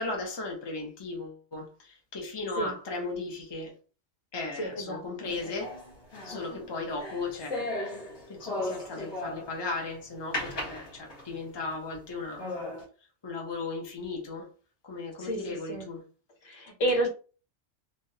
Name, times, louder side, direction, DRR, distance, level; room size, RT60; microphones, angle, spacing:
voice 1, 0.0-3.7 4.3-5.7 6.2-7.7 8.3-12.7 13.2-14.5 14.8-16.0, left 3 dB, 25° left, 0.7 m, -36 dB
voice 2, 4.6-5.3 15.2-15.4 15.7-15.9 16.4-17.1, right 1 dB, 75° left, 1.2 m, -30 dB
sound 1, 5.3-9.7 10.3-11.4 11.9-12.0 12.4-12.8, left 2 dB, 55° left, 1.9 m, -36 dB
3.3 x 2.4 x 2.8 m
omnidirectional pair, 1.4 m